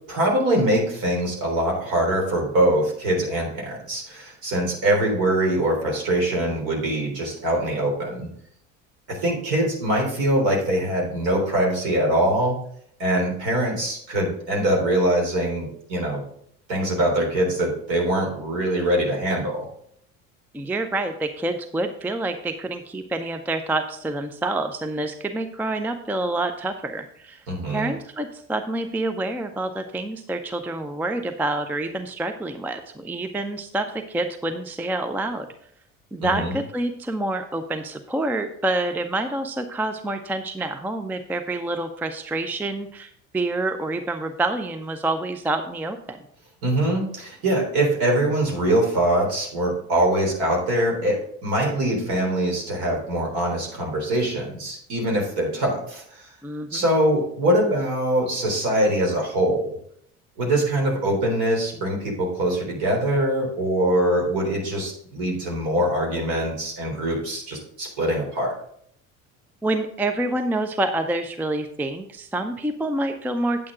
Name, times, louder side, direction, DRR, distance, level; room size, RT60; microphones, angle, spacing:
voice 1, 0.1-8.3 9.1-12.6 13.0-16.2 16.7-19.7 27.5-27.9 36.3-36.5 46.6-56.3 56.7-59.7 60.4-68.5, right 1 dB, 55° right, 0 dB, 3.7 m, -23 dB
voice 2, 20.5-35.5 36.1-46.2 56.4-56.8 69.6-73.7, right 2 dB, 5° right, 7 dB, 0.5 m, -27 dB
8.9 x 8.5 x 3.7 m, 0.65 s
figure-of-eight pair, 60°, 44 cm